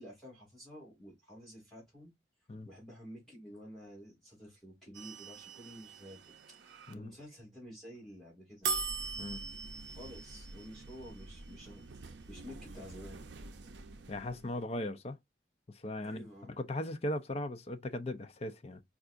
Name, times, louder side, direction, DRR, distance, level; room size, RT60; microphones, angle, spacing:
voice 1, 0.0-2.1 2.6-6.2 6.6-8.7 9.9-13.3 16.0-16.6, equal, ahead, 2.3 m, -51 dB
sound 1, 4.9-6.9 8.6-14.7, right 4 dB, 70° right, 0.5 m, -42 dB
voice 2, 14.1-15.2 15.7-18.8, left 1 dB, 35° left, 0.5 m, -38 dB
4.6 x 2.4 x 2.5 m
head